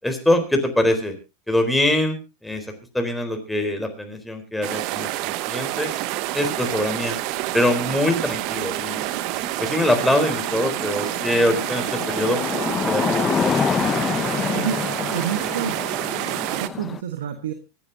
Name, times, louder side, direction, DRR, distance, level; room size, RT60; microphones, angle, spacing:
voice 1, 0.0-1.2 1.5-2.2 2.4-2.7 2.9-5.9 6.3-7.2 7.5-9.0 9.6-12.4 12.7-13.2, left 1 dB, 5° left, 4 dB, 4.1 m, -23 dB
sound 1, 4.6-16.7, right 17 dB, 55° right, 0.8 m, -28 dB
sound 2, 5.8-17.0, left 7 dB, 25° left, 0.7 m, -28 dB
voice 2, 14.5-15.8 16.3-17.5, right 9 dB, 80° right, 8 dB, 1.4 m, -29 dB
25.0 x 10.0 x 2.8 m, 0.28 s
hypercardioid pair, 90°, 0 cm